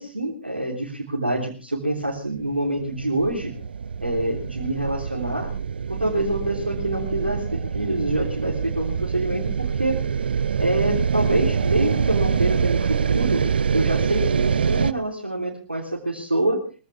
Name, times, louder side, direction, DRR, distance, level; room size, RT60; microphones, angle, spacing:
voice 1, 0.0-3.5 4.0-5.5 5.9-10.0 10.6-16.6, right 1 dB, 85° right, -3 dB, 3.6 m, -26 dB
sound 1, 2.4-14.9, right 6 dB, 70° right, 0.7 m, -25 dB
23.0 x 15.5 x 3.5 m, 0.36 s
figure-of-eight pair, 110°, 6 cm